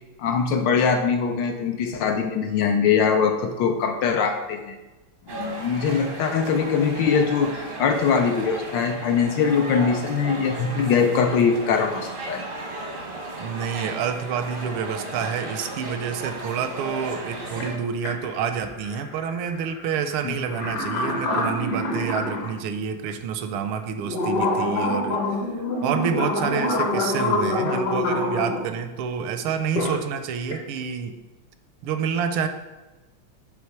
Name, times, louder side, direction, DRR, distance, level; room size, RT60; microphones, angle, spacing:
voice 1, 0.2-4.8 5.3-12.4 20.2-20.4, left 6 dB, 70° left, 5 dB, 1.1 m, -22 dB
sound 1, 5.3-17.8, right 2 dB, 50° right, 0.6 m, -35 dB
voice 2, 13.4-25.2 25.8-31.2 31.8-32.5, right 7 dB, 80° right, 9 dB, 1.4 m, -28 dB
sound 2, 14.8-14.9 15.2-16.0 17.6-17.7 18.0-22.5 23.1-23.2 23.8-28.6 29.5-30.0 30.4-30.7, left 2 dB, 55° left, 1.5 m, -26 dB
8.8 x 3.6 x 4.6 m, 1.1 s
omnidirectional pair, 2.4 m